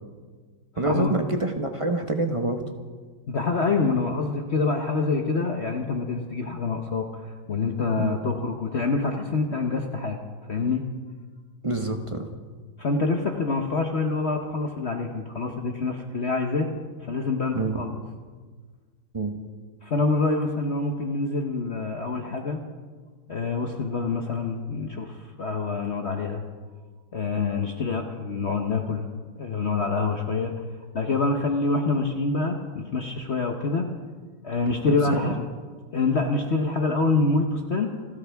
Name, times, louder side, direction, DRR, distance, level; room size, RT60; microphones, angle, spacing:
voice 1, 0.8-2.6 8.0-8.2 11.6-12.3 17.5-17.8 19.1-19.4 34.9-35.4, right 2 dB, 25° right, 5 dB, 0.7 m, -27 dB
voice 2, 3.3-7.2 7.5-10.2 10.5-10.8 12.8-16.7 17.0-18.0 19.8-22.6 23.3-26.4 27.1-29.0 29.4-30.5 30.9-33.8 34.4-35.5 35.9-37.9, left 3 dB, 45° left, 3 dB, 1.1 m, -26 dB
29.0 x 12.5 x 3.5 m, 1.5 s
omnidirectional pair, 1.9 m